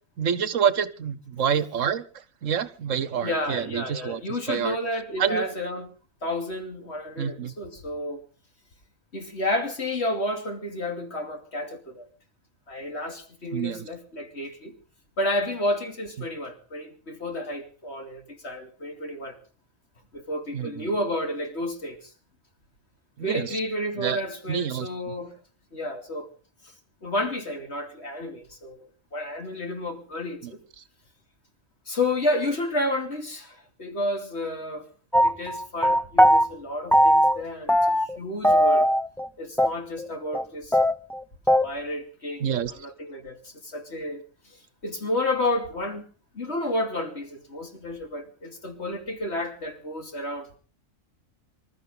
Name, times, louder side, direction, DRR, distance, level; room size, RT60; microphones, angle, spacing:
voice 1, 0.2-2.1 2.4-4.2 4.5-4.8 5.2-5.4 7.2-7.5 13.5-13.9 20.5-20.9 23.2-23.6 24.0-24.2 24.5-25.1 30.4-30.5 42.4-42.7, right 8 dB, 70° right, 1.3 m, -27 dB
voice 2, 3.2-5.9 6.2-8.2 9.1-12.1 12.7-14.7 15.2-19.4 20.1-22.1 23.2-25.4 25.7-26.3 26.6-26.7 27.0-30.6 31.9-34.9 35.2-38.9 39.4-40.8 41.6-46.1 46.3-50.6, left 1 dB, 55° left, 3.0 m, -31 dB
sound 1, 35.1-36.5 36.9-37.4 37.7-38.2 38.4-39.3 39.6-39.7 40.0-40.1 40.3-40.4 40.7-41.7, equal, 5° left, 0.4 m, -19 dB
25.5 x 13.5 x 3.8 m
omnidirectional pair, 1.4 m